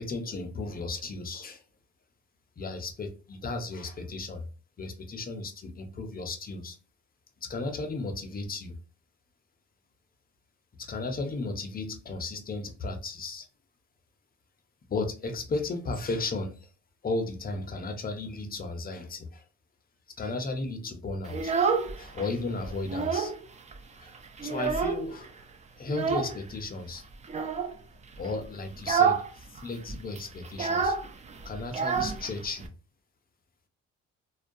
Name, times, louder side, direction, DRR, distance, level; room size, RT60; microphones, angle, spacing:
voice 1, 0.0-1.6 2.6-4.5 4.8-6.8 7.4-8.8 10.8-13.5 14.9-16.7 17.0-19.4 20.2-21.5 22.0-23.3 24.0-24.1 24.4-25.5 25.8-27.0 28.2-31.0 31.4-32.7, left 3 dB, 30° left, 0.5 m, -34 dB
Child speech kid speaking, 21.2-22.3 22.6-23.4 23.7-23.8 24.1-25.2 25.9-26.4 27.2-27.7 28.2-28.4 28.7-29.3 29.5-29.6 29.9-32.7, right 6 dB, 25° right, 0.3 m, -28 dB
2.2 x 2.2 x 2.5 m
cardioid pair, 90°, 30 cm